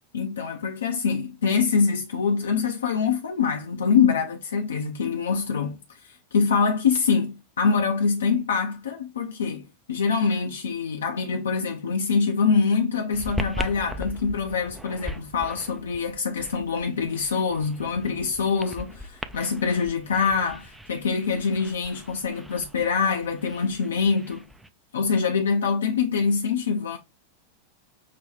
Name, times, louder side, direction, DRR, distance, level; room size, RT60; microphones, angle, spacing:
voice 1, 0.1-24.4 24.9-27.0, left 5 dB, 65° left, 0.5 m, -25 dB
sound 1, 13.1-24.7, equal, 5° right, 0.4 m, -39 dB
5.6 x 2.2 x 3.2 m
figure-of-eight pair, 90°, 0 cm